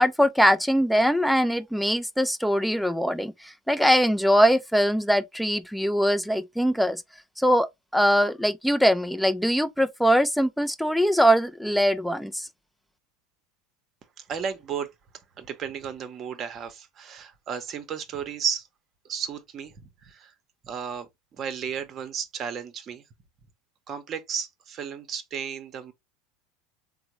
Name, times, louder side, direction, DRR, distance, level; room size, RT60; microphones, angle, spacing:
voice 1, 0.0-7.0 7.4-12.5, equal, ahead, 0.4 m, -22 dB
voice 2, 14.2-14.9 15.4-18.7 19.0-20.3 20.6-21.1 21.4-23.0 23.9-25.9, right 7 dB, 40° right, 0.8 m, -33 dB
3.5 x 2.0 x 3.0 m
hypercardioid pair, 95°, 0 cm